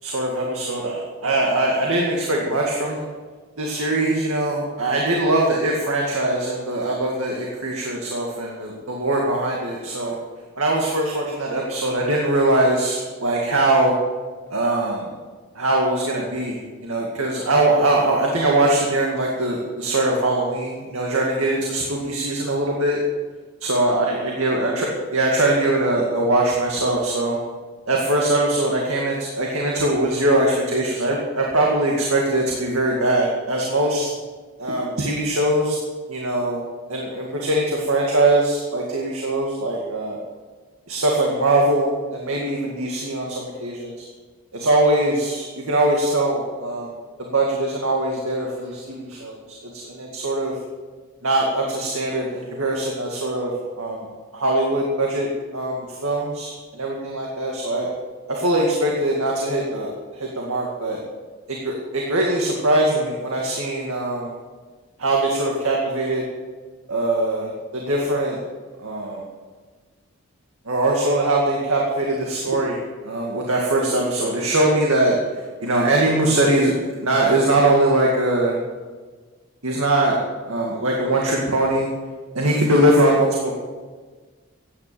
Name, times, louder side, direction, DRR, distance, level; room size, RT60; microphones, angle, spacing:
voice 1, 0.0-3.0 3.6-10.2 10.6-13.9 14.5-15.1 15.6-23.0 23.6-27.4 27.9-34.1 34.6-35.8 36.1-36.6 36.9-40.2 40.9-44.1 44.5-46.9 47.2-50.5 51.2-57.9 58.3-61.0 61.5-64.3 65.0-66.2 66.9-68.4 68.8-69.2 70.7-76.7 77.0-78.6 79.6-80.2 80.5-81.9 82.3-83.5, right 1 dB, 85° right, -2 dB, 2.1 m, -22 dB
15.0 x 9.8 x 6.9 m, 1.4 s
head